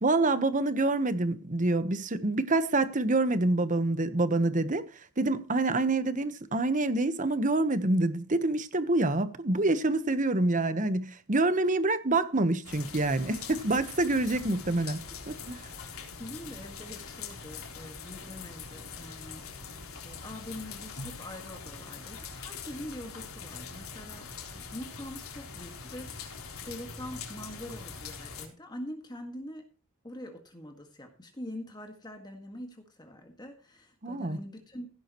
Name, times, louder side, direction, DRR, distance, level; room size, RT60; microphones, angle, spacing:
voice 1, 0.0-4.8 5.2-15.0 15.3-15.6 34.0-34.4, right 2 dB, 35° right, 1.1 m, -27 dB
sound 1, 12.6-28.5, left 5 dB, 85° left, 3.7 m, -43 dB
voice 2, 16.2-19.8 20.0-29.6 30.0-34.9, left 1 dB, 20° left, 1.8 m, -44 dB
16.0 x 11.0 x 3.1 m
head